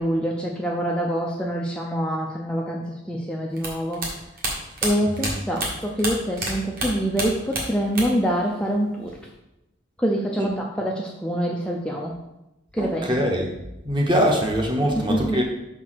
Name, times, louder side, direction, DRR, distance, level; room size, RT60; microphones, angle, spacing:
voice 1, 0.0-4.0 4.8-9.2 10.0-12.1 12.7-13.1 14.9-15.4, equal, 5° left, -2 dB, 0.5 m, -25 dB
sound 1, 3.6-6.5 6.8-8.3 8.5-9.3, right 2 dB, 45° right, 1.7 m, -29 dB
voice 2, 12.8-13.5 13.8-15.4, equal, 25° right, 1 dB, 1.0 m, -23 dB
5.4 x 4.6 x 5.9 m, 0.92 s
head